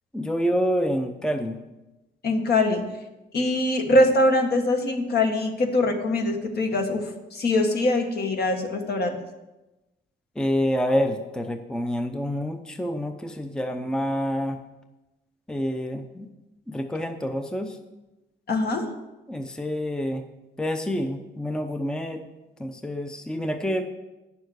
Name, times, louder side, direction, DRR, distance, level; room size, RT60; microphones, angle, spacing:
voice 1, 0.1-1.6 10.4-14.6 15.5-16.3 16.7-17.8 19.3-20.2 20.6-22.2 22.6-23.8, equal, 5° left, 6 dB, 0.7 m, -27 dB
voice 2, 2.2-2.8 3.3-7.0 7.3-9.2 18.5-18.9, left 2 dB, 55° left, 4 dB, 1.6 m, -22 dB
9.6 x 7.1 x 6.4 m, 1.0 s
cardioid pair, 100°, 19 cm